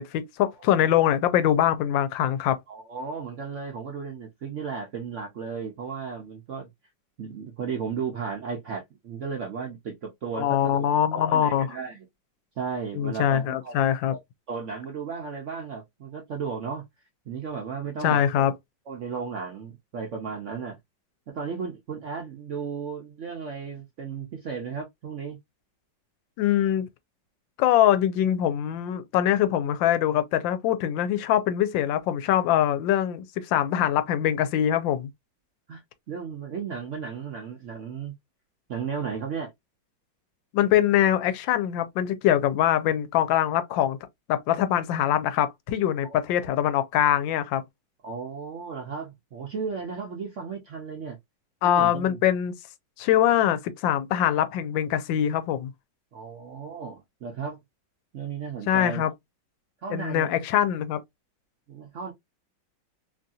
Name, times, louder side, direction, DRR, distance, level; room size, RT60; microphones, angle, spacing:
voice 1, 0.0-2.6 10.4-11.7 12.9-14.1 18.0-18.5 26.4-26.9 27.6-35.1 40.5-44.0 44.3-47.6 51.6-52.5 53.0-55.7 58.7-59.1 59.9-61.0, left 11 dB, 85° left, 1.3 m, -23 dB
voice 2, 2.7-6.7 7.2-10.9 11.3-12.1 12.6-14.0 14.5-16.8 17.3-18.5 18.9-20.8 21.3-25.4 35.7-35.8 36.1-38.1 38.7-39.5 46.0-46.5 48.0-51.2 51.6-52.2 56.1-57.6 58.1-59.1 59.8-60.4 61.7-62.1, right 6 dB, 65° right, 0.7 m, -35 dB
3.1 x 2.6 x 2.3 m
omnidirectional pair, 2.0 m